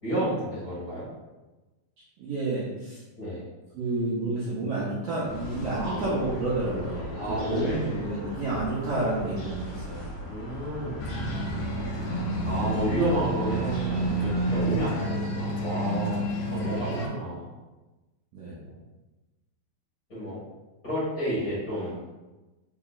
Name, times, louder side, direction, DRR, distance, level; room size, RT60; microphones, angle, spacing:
voice 1, 0.0-1.1 3.2-3.4 5.7-6.2 7.1-8.0 8.8-9.0 10.3-11.0 12.4-16.2 16.5-17.5 18.6-18.8 20.1-20.4 20.8-22.0, equal, 35° left, -10 dB, 1.5 m, -31 dB
voice 2, 2.2-3.0 3.7-10.1 16.5-16.8 18.3-18.6, right 2 dB, 75° right, -8 dB, 1.4 m, -30 dB
sound 1, 5.2-14.9, equal, 55° left, 1.6 m, -37 dB
sound 2, 11.0-17.1, right 2 dB, 75° left, 1.5 m, -29 dB
4.5 x 2.9 x 2.4 m, 1.1 s
omnidirectional pair, 3.5 m